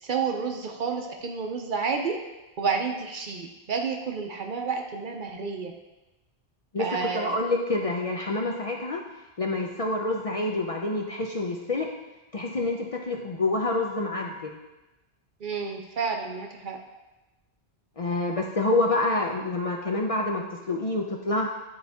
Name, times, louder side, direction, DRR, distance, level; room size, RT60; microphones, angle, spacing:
voice 1, 0.0-2.2 2.6-5.7 6.8-7.4 15.4-16.8, right 5 dB, 55° right, 3 dB, 0.7 m, -30 dB
voice 2, 6.7-9.0 9.4-11.9 12.3-14.6 18.0-21.5, left 2 dB, 45° left, 0 dB, 0.5 m, -27 dB
9.6 x 4.0 x 3.5 m, 1.0 s
omnidirectional pair, 1.1 m